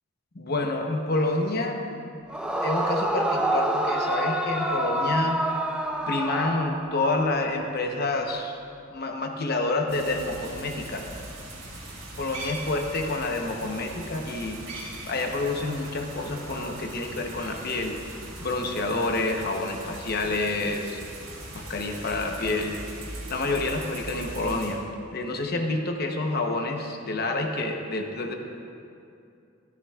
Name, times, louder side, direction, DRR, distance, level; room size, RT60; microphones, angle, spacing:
voice 1, 0.3-1.8 2.6-5.4 6.1-8.6 8.9-11.1 12.2-14.6 15.1-21.0 21.5-22.8 23.3-24.8 25.1-28.3, left 2 dB, 50° left, 3 dB, 0.9 m, -28 dB
Yell / Screaming, 2.3-7.2, right 1 dB, 5° right, 0.6 m, -27 dB
sound 1, 9.9-24.7, right 1 dB, 90° right, 2.7 m, -40 dB
13.5 x 13.0 x 2.4 m, 2.6 s
head